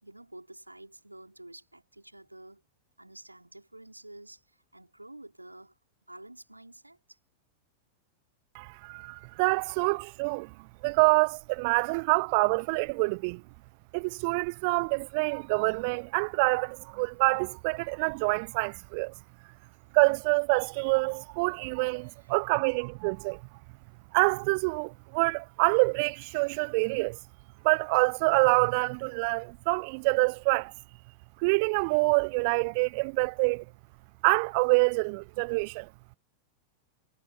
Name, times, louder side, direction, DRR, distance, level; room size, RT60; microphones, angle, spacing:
voice 1, 0.0-2.6 3.0-5.8 6.1-7.2, right 1 dB, 85° right, 4.4 m, -49 dB
voice 2, 8.5-10.5 10.8-13.4 13.9-19.1 19.9-23.4 24.1-27.2 27.6-30.7 31.4-33.6 34.2-35.9, right 31 dB, 45° right, 0.4 m, -26 dB
figure-of-eight pair, 90°, 0 cm